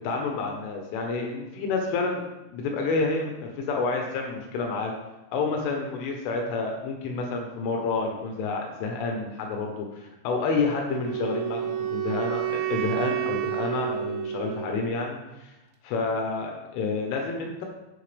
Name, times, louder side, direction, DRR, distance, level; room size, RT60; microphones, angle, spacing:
voice 1, 0.0-2.2 2.5-4.9 5.3-15.5 15.8-17.7, left 4 dB, 75° left, 1 dB, 3.5 m, -29 dB
Wind instrument woodwind instrument, 10.9-15.0, right 12 dB, 80° right, 2.2 m, -30 dB
16.0 x 6.2 x 3.4 m, 1.0 s
omnidirectional pair, 5.8 m